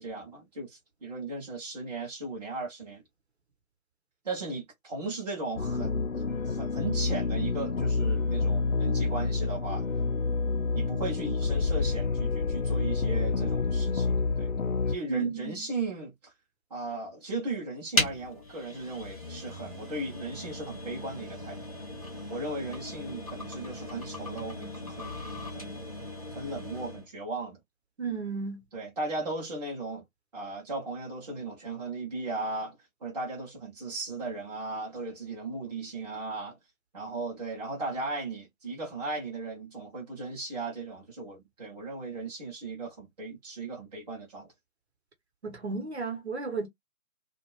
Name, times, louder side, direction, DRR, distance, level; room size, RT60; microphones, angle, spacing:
voice 1, 0.0-3.0 4.2-6.1 6.4-9.9 10.7-14.5 14.9-16.3 16.7-21.6 22.3-25.8 26.3-27.6 28.7-30.0 30.3-32.8 33.0-36.6 36.9-44.5, right 3 dB, 30° right, 0.9 m, -37 dB
sound 1, 5.5-15.0, left 4 dB, 65° left, 0.6 m, -28 dB
voice 2, 15.1-15.7 28.0-28.6 45.4-46.7, right 4 dB, 50° right, 1.1 m, -33 dB
sound 2, 17.9-27.1, left 1 dB, 25° left, 0.6 m, -37 dB
2.5 x 2.4 x 3.1 m
figure-of-eight pair, 150°, 43 cm